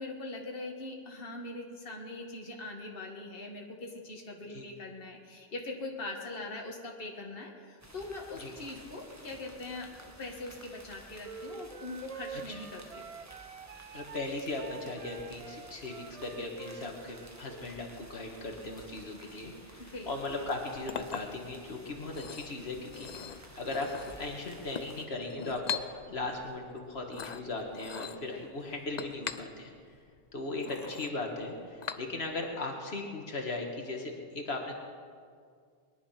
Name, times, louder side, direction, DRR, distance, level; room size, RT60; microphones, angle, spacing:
voice 1, 0.0-13.1 19.8-20.1 28.3-28.5, left 2 dB, 65° left, 0 dB, 1.9 m, -42 dB
sound 1, 7.8-25.1, right 1 dB, 15° right, 1.5 m, -53 dB
sound 2, 11.2-17.7, right 6 dB, 50° right, 0.5 m, -47 dB
voice 2, 13.9-29.7 30.3-34.7, left 2 dB, 90° left, 1 dB, 2.0 m, -38 dB
Chink clink, 20.4-32.5, left 7 dB, 50° left, 0.7 m, -43 dB
22.0 x 11.0 x 5.8 m, 2.1 s
omnidirectional pair, 1.0 m